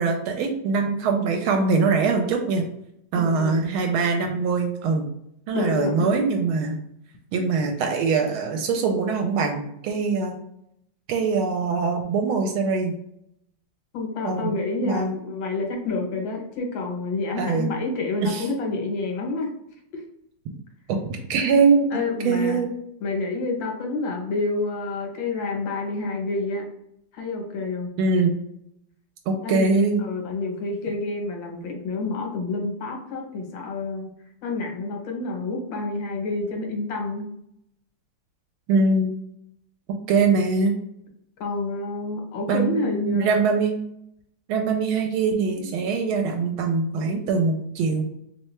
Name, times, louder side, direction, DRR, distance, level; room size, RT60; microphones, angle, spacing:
voice 1, 0.0-2.7 3.1-5.1 5.5-6.8 7.3-10.4 11.1-12.9 14.2-14.5 14.8-15.1 17.4-17.7 18.2-18.4 20.9-22.7 28.0-28.3 29.3-30.0 38.7-39.1 40.1-40.7 42.5-43.8 44.5-48.0, right 4 dB, 80° right, 3 dB, 1.4 m, -22 dB
voice 2, 3.1-3.6 5.5-6.2 13.9-19.5 19.9-20.0 21.9-22.6 23.0-26.7 27.1-27.9 29.4-34.1 34.4-37.3 41.4-43.3, left 3 dB, 70° left, 2 dB, 1.5 m, -28 dB
3.4 x 3.2 x 3.1 m, 0.75 s
omnidirectional pair, 2.3 m